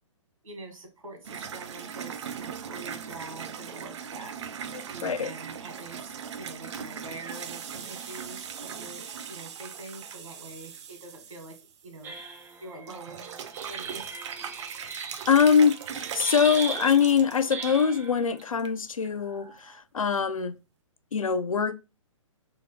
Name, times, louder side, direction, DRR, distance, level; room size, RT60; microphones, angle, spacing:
voice 1, 0.4-4.4 4.9-11.5 11.8-12.1 12.6-13.3 13.7-14.2, right 2 dB, 80° right, 1.8 m, -45 dB
sound 1, 1.2-12.5 12.9-17.8 18.3-18.7 19.0-19.1 20.1-20.2, right 7 dB, 60° right, 0.6 m, -40 dB
voice 2, 4.7-5.3 15.3-20.5 21.1-21.7, left 6 dB, 85° left, 0.5 m, -23 dB
sound 2, 12.0-18.3 19.1-19.7, right 5 dB, 10° right, 0.4 m, -39 dB
3.7 x 2.5 x 4.4 m
figure-of-eight pair, 125°, 17 cm